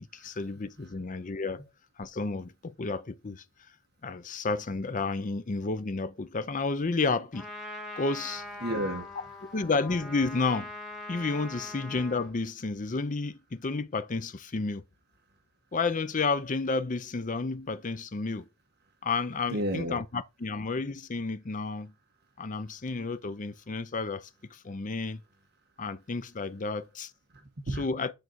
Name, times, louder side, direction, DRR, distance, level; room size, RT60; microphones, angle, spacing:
voice 1, 0.0-1.6 2.0-3.4 4.0-7.5 8.0-8.4 9.5-10.7 11.1-14.8 15.7-18.5 19.0-21.9 22.4-25.2 25.8-27.1 27.8-28.1, left 3 dB, 35° left, 0.6 m, -31 dB
Trumpet, 7.3-12.3, left 2 dB, ahead, 2.5 m, -42 dB
voice 2, 8.6-9.5 19.5-20.0 27.3-27.8, right 1 dB, 50° right, 1.4 m, -33 dB
8.5 x 4.0 x 4.5 m
head